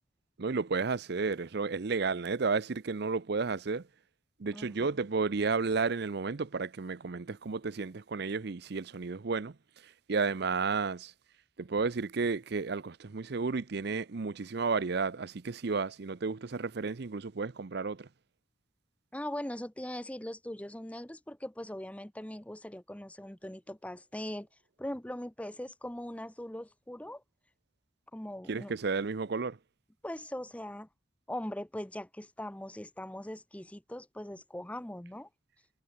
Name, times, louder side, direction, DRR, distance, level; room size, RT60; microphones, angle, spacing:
voice 1, 0.4-3.9 4.4-9.6 9.8-11.1 11.6-18.1 28.5-29.6, right 4 dB, 55° right, 0.6 m, -32 dB
voice 2, 4.5-4.9 19.1-24.5 24.8-27.2 28.1-28.7 30.0-30.9 31.3-35.3, left 1 dB, 5° left, 0.8 m, -40 dB
head